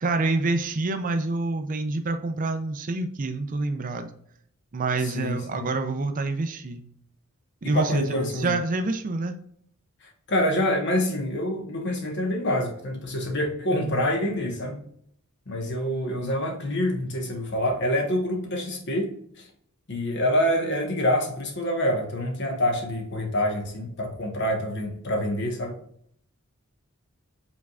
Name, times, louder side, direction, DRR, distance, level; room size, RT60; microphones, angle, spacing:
voice 1, 0.0-4.1 4.7-6.8 7.6-9.4, right 3 dB, 40° right, 7 dB, 0.4 m, -27 dB
voice 2, 5.0-5.7 7.6-8.5 10.0-14.8 15.5-19.5 19.9-25.8, left 1 dB, 55° left, 3 dB, 1.2 m, -26 dB
5.3 x 3.6 x 2.3 m, 0.66 s
head